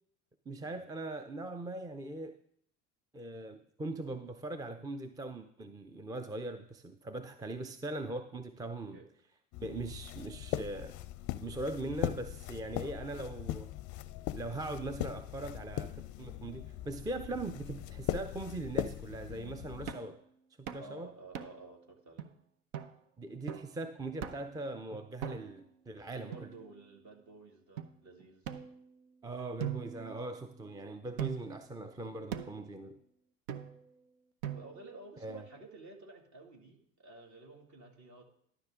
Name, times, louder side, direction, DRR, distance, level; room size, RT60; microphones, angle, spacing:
voice 1, 0.5-2.4 3.1-9.0 9.6-10.9 11.4-13.7 14.4-15.9 16.2-20.2 20.6-21.1 23.2-26.5 29.2-33.0 35.2-35.4, right 2 dB, 10° right, 8 dB, 0.5 m, -40 dB
sound 1, 9.5-19.9, left 13 dB, 45° left, 0.5 m, -40 dB
sound 2, 19.9-20.1 20.7-20.9 21.3-21.7 22.2-22.3 22.7-22.9 23.5-23.7 24.2-24.6 25.2-25.7 26.3-27.0 27.8-27.9 28.4-29.1 29.6-30.6 31.2-31.6 32.3-32.7 33.5-33.9 34.4-34.9, right 9 dB, 75° right, 0.8 m, -41 dB
voice 2, 20.8-22.3 26.1-28.6 34.5-38.2, right 2 dB, 40° right, 2 dB, 2.2 m, -52 dB
12.0 x 5.8 x 3.7 m, 0.67 s
hypercardioid pair, 70°, 42 cm